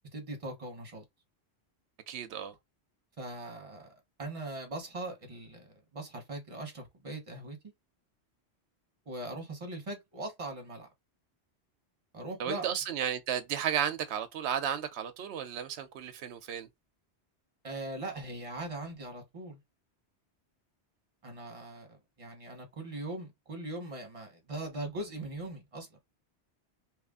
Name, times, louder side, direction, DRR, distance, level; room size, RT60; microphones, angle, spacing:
voice 1, 0.1-1.0 3.2-5.7 5.9-7.6 9.1-10.9 12.1-12.7 17.6-19.6 21.2-25.9, right 2 dB, 30° right, 1.1 m, -40 dB
voice 2, 2.1-2.5 12.4-16.7, right 9 dB, 75° right, 0.9 m, -33 dB
3.1 x 2.5 x 3.5 m
omnidirectional pair, 1.1 m